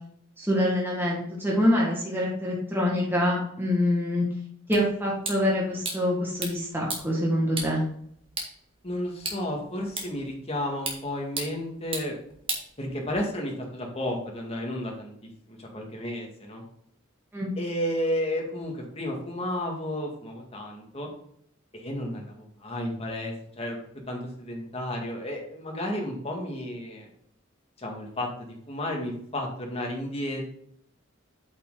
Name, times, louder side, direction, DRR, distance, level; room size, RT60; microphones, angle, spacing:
voice 1, 0.4-4.3 4.7-7.8 17.3-17.5, left 1 dB, 10° right, -4 dB, 1.9 m, -25 dB
sound 1, 4.7-13.3, right 3 dB, 25° right, 2.0 m, -38 dB
voice 2, 8.8-12.2 12.8-16.6 17.6-21.1 21.7-23.8 24.1-27.1 27.8-30.5, left 1 dB, 30° left, 0 dB, 2.0 m, -32 dB
8.5 x 5.7 x 3.9 m, 0.68 s
head